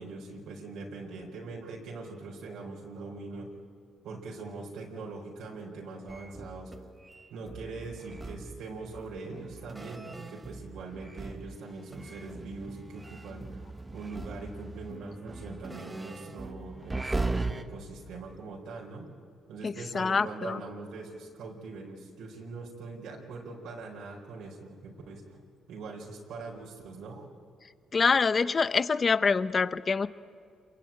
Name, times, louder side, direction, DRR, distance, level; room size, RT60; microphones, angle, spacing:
voice 1, 0.0-3.5 4.0-6.8 7.3-19.1 19.5-25.4 25.7-27.3, right 3 dB, 80° right, -1 dB, 4.5 m, -42 dB
sound 1, 6.1-11.6 11.9-17.6, right 2 dB, 20° right, 1.4 m, -39 dB
voice 2, 19.6-20.6 27.9-30.1, left 5 dB, 35° left, 15 dB, 0.9 m, -26 dB
27.5 x 23.0 x 8.8 m, 2.2 s
cardioid pair, 90°, 0 cm